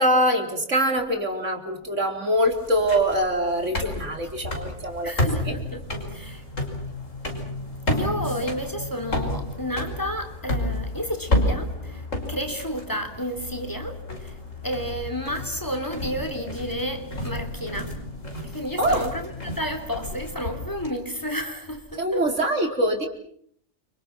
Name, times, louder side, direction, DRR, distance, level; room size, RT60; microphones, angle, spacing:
voice 1, 0.0-5.6 18.8-19.0 22.0-23.1, right 1 dB, 70° right, 4.5 m, -24 dB
sound 1, 2.5-20.9, left 1 dB, 85° left, 5.8 m, -31 dB
voice 2, 5.0-6.4 7.9-14.4 14.6-17.9 18.4-22.2, equal, 15° left, 3.4 m, -31 dB
29.5 x 26.5 x 6.1 m
omnidirectional pair, 1.3 m